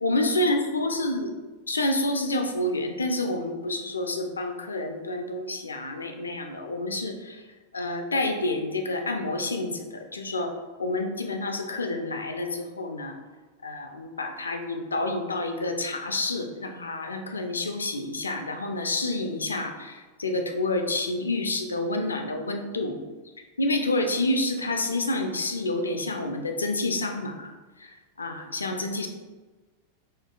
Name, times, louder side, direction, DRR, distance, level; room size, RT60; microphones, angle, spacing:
voice 1, 0.0-1.3 1.7-7.4 7.7-10.5 10.8-13.1 13.6-23.0 23.6-27.5 27.8-27.9 28.2-29.1, left 2 dB, 75° left, 4 dB, 0.4 m, -28 dB
4.3 x 2.3 x 2.3 m, 1.3 s
figure-of-eight pair, 90°, 0 cm